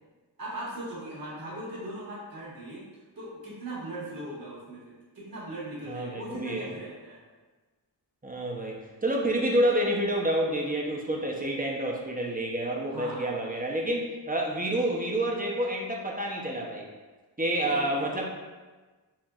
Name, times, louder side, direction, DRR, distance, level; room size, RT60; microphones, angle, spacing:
voice 1, 0.4-7.2 12.9-13.4 17.6-18.0, right 1 dB, 55° right, -8 dB, 1.4 m, -39 dB
voice 2, 5.9-6.7 8.2-16.9 17.4-18.3, right 1 dB, 20° right, -2 dB, 0.6 m, -28 dB
4.3 x 2.8 x 2.3 m, 1.3 s
wide cardioid pair, 60°, 43 cm